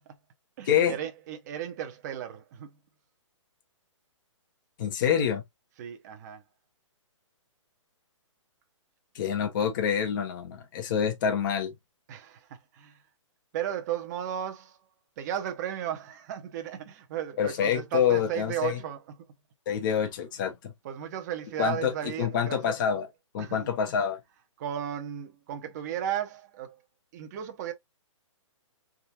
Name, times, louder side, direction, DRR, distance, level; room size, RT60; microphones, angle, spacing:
voice 1, 0.6-2.8 5.8-6.4 12.1-13.0 13.5-14.8 15.2-19.2 19.9-20.0 20.8-22.6 23.4-23.7 24.6-26.8 27.1-27.7, right 10 dB, 35° right, 0.9 m, -35 dB
voice 2, 4.8-5.4 9.1-11.7 17.4-18.8 19.7-20.7 21.6-21.9 22.2-23.1 23.3-24.2, left 8 dB, 40° left, 1.1 m, -26 dB
3.9 x 3.7 x 2.8 m
hypercardioid pair, 155°, 16 cm